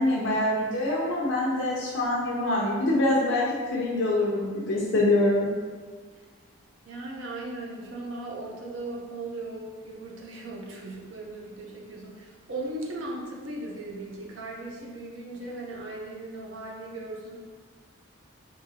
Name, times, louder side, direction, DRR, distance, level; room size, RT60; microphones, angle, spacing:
voice 1, 0.0-5.5, left 1 dB, 65° left, -5 dB, 0.5 m, -25 dB
voice 2, 6.8-17.4, right 2 dB, 65° right, -2 dB, 0.6 m, -38 dB
3.8 x 2.7 x 2.7 m, 1.5 s
head